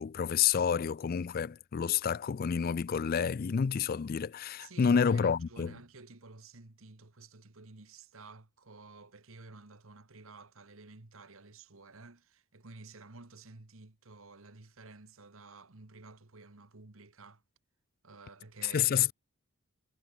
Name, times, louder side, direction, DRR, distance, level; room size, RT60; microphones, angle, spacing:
voice 1, 0.0-5.7 18.6-19.1, left 7 dB, 45° left, 0.3 m, -29 dB
voice 2, 4.6-17.4 18.0-18.9, right 3 dB, 65° right, 1.6 m, -52 dB
head